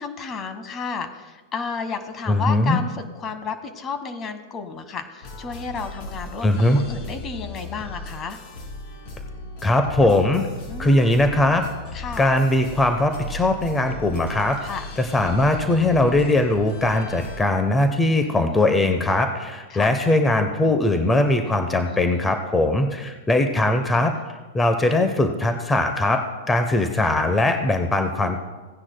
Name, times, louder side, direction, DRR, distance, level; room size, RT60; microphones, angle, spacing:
voice 1, 0.0-6.5 6.8-8.4 10.7-11.0 11.9-12.3 14.6-14.8 18.3-18.7 19.7-20.0 21.8-22.3 24.0-24.1, left 5 dB, 30° left, 9 dB, 1.3 m, -32 dB
voice 2, 2.3-2.8 6.4-6.8 9.6-10.5 10.8-11.6 12.2-14.6 15.0-24.1 24.5-26.2 26.5-28.4, left 2 dB, 10° left, 6 dB, 0.8 m, -20 dB
sound 1, 5.2-17.4, left 2 dB, 50° left, 2.7 m, -37 dB
17.0 x 9.7 x 2.2 m, 1.3 s
hypercardioid pair, 125°, 0 cm